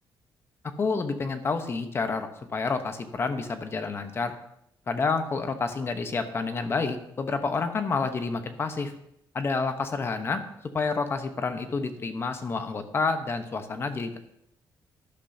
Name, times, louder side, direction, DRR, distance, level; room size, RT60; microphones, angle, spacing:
voice 1, 0.8-4.3 4.9-8.9 9.3-10.4 10.7-14.1, left 4 dB, 30° left, 8 dB, 0.9 m, -29 dB
12.0 x 11.5 x 2.7 m, 0.77 s
cardioid pair, 160°, 8 cm